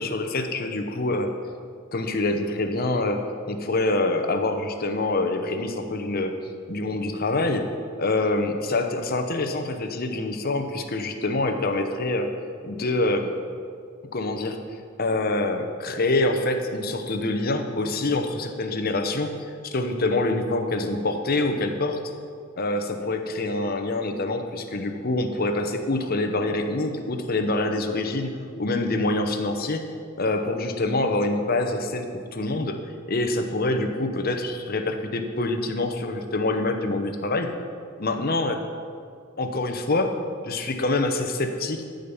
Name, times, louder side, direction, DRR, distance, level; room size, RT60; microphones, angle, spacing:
voice 1, 0.0-1.3 1.9-6.4 6.7-7.7 8.0-12.3 12.6-13.3 14.1-14.6 15.0-19.4 19.6-22.0 22.6-28.3 28.6-29.8 30.2-32.8 33.1-37.5 38.0-38.6 39.4-40.1 40.4-41.8, left 2 dB, 45° left, 6 dB, 0.9 m, -25 dB
13.0 x 5.2 x 7.0 m, 2.2 s
head